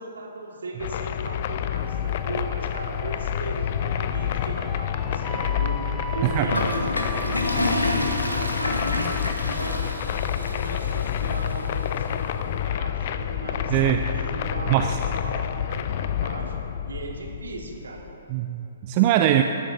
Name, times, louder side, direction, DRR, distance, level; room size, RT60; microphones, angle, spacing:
voice 1, 0.0-5.9 6.1-16.5 16.9-18.1, right 2 dB, 65° right, 0 dB, 2.2 m, -37 dB
sound 1, 0.8-18.1, left 9 dB, 40° left, 0.5 m, -28 dB
sound 2, 1.8-11.5, right 3 dB, 5° right, 0.8 m, -41 dB
Toilet flush, 6.5-11.5, left 1 dB, 85° left, 1.5 m, -28 dB
voice 2, 13.7-14.0 14.7-14.9 18.3-19.4, right 13 dB, 35° right, 6 dB, 0.5 m, -21 dB
20.5 x 12.5 x 2.8 m, 2.9 s
figure-of-eight pair, 125°, 0 cm